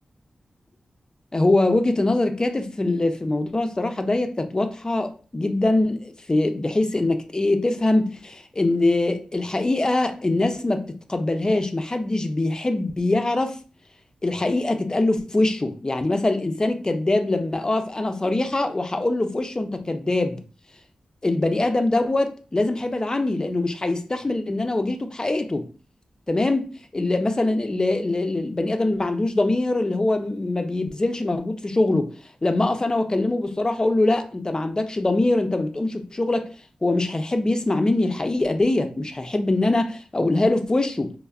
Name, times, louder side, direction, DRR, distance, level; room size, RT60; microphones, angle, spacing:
voice 1, 1.3-13.6 14.2-20.4 21.2-25.7 26.3-26.7 26.9-32.1 32.4-36.5 36.8-41.1, left 2 dB, 30° left, 0.4 m, -23 dB
3.2 x 2.0 x 2.3 m
cardioid pair, 45°, 2 cm